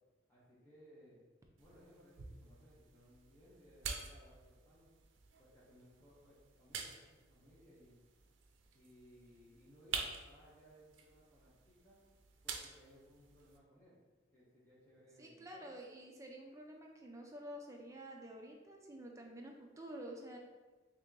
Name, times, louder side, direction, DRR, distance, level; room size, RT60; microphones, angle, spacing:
voice 1, 0.3-1.2 1.6-4.9 5.4-8.0 8.7-12.0 12.4-14.0 14.3-15.7, equal, 15° left, -10 dB, 0.9 m, -63 dB
sound 1, 1.6-13.6, right 5 dB, 85° right, 0.4 m, -49 dB
voice 2, 15.2-20.4, right 1 dB, 15° right, 1 dB, 0.4 m, -50 dB
3.5 x 2.9 x 3.7 m, 1.3 s
head